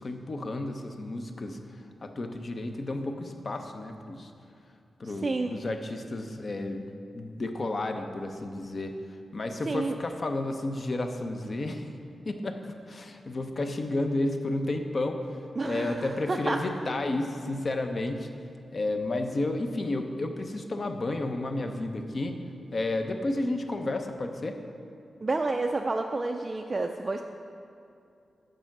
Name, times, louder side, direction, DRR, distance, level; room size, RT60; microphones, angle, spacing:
voice 1, 0.0-4.3 5.0-6.9 7.1-9.0 9.3-11.9 12.2-15.4 15.6-18.3 18.7-22.4 22.7-24.6, left 2 dB, 40° left, 6 dB, 0.6 m, -32 dB
voice 2, 9.7-10.0 15.6-16.6 25.2-27.2, right 3 dB, 30° right, 3 dB, 0.3 m, -29 dB
6.8 x 6.2 x 5.9 m, 2.6 s
wide cardioid pair, 120°, 0 cm